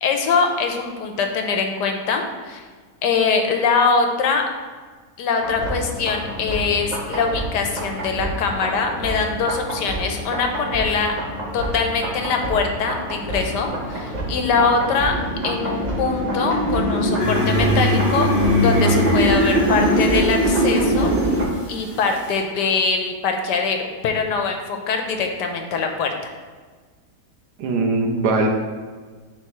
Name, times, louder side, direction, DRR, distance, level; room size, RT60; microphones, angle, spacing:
voice 1, 0.0-2.7 3.0-4.4 5.2-11.1 11.5-15.2 15.4-18.3 18.6-21.1 21.7-26.1, left 5 dB, 85° left, 4 dB, 1.3 m, -22 dB
sound 1, 5.4-21.4, equal, 35° right, 0.8 m, -24 dB
sound 2, 17.2-22.4, equal, 15° left, 2.0 m, -26 dB
voice 2, 27.6-28.5, right 3 dB, 75° right, 2 dB, 1.4 m, -21 dB
10.5 x 3.5 x 3.0 m, 1.5 s
omnidirectional pair, 1.8 m